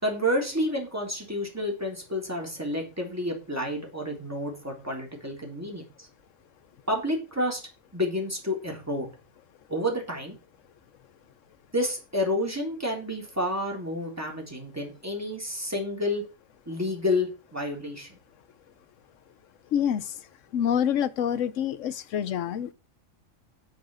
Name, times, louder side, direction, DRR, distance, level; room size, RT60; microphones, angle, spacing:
voice 1, 0.0-6.1 6.9-7.6 7.9-9.1 9.7-10.4 11.7-16.2 16.7-18.2, left 1 dB, 10° right, 3.6 m, -30 dB
voice 2, 19.7-20.1 20.5-22.7, left 9 dB, 70° left, 1.1 m, -26 dB
10.5 x 6.1 x 6.3 m
omnidirectional pair, 1.4 m